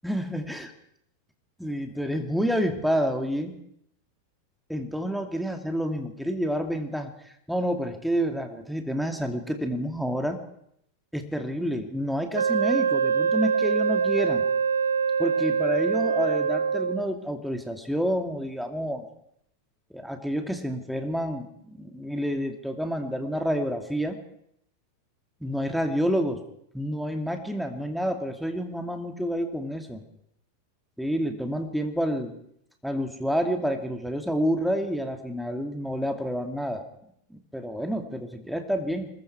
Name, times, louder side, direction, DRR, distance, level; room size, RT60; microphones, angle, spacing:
voice 1, 0.0-0.7 1.6-3.6 4.7-7.1 7.5-10.4 11.1-14.4 15.2-19.1 19.9-24.2 25.4-26.4 26.7-30.0 31.0-32.3 32.8-36.8 37.3-39.1, equal, ahead, 5 dB, 2.4 m, -29 dB
Wind instrument woodwind instrument, 12.3-17.1, right 6 dB, 70° right, 0.7 m, -24 dB
26.0 x 21.5 x 4.7 m, 0.72 s
figure-of-eight pair, 90°, 0 cm